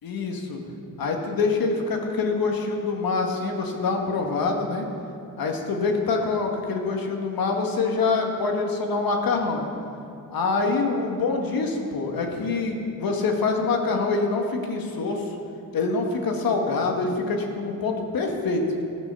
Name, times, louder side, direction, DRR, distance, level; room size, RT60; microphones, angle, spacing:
voice 1, 0.0-0.6 1.0-4.9 5.4-9.7 10.3-15.2 15.7-18.7, left 4 dB, 70° left, 2 dB, 1.8 m, -25 dB
14.0 x 6.2 x 6.8 m, 2.7 s
cardioid pair, 90°, 36 cm